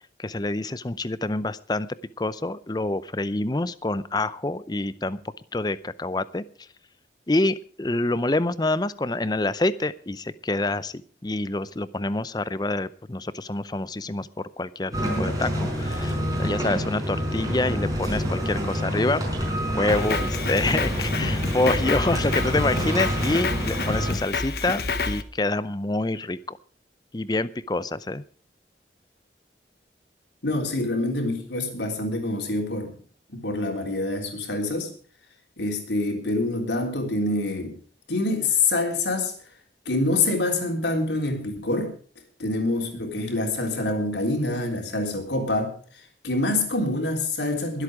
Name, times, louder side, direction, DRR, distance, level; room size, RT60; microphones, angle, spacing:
voice 1, 0.2-1.9 2.2-5.2 5.5-6.4 7.3-19.2 19.7-26.6 27.1-28.2, left 2 dB, 25° left, 16 dB, 0.6 m, -27 dB
sound 1, 14.9-24.1, equal, 20° right, 5.0 m, -27 dB
Drum kit, 19.9-25.2, left 3 dB, 60° left, 1.1 m, -29 dB
voice 2, 30.4-32.9 33.3-34.9 35.6-37.8 38.1-39.3 39.9-41.9 42.4-45.7 46.2-47.8, left 2 dB, 85° left, 3 dB, 3.6 m, -26 dB
22.0 x 8.3 x 4.9 m, 0.43 s
head